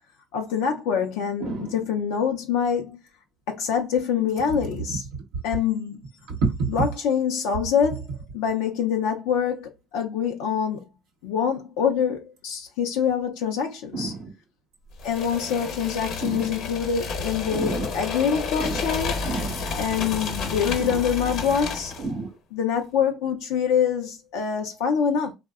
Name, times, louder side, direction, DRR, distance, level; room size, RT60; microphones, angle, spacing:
voice 1, 0.3-3.0 3.5-5.0 5.4-6.0 6.7-10.8 11.2-14.1 15.0-19.2 19.8-21.9 22.5-25.3, left 7 dB, 90° left, 0.4 m, -25 dB
voice 2, 1.4-1.7 6.3-6.7 13.9-14.3 16.2-16.5 17.5-17.9 18.6-18.8 19.2-19.7 20.8-21.0 22.0-22.4, right 4 dB, 85° right, 0.7 m, -29 dB
sound 1, 15.0-22.1, left 4 dB, 70° left, 0.8 m, -31 dB
2.6 x 2.0 x 2.3 m
supercardioid pair, 85°, 0 cm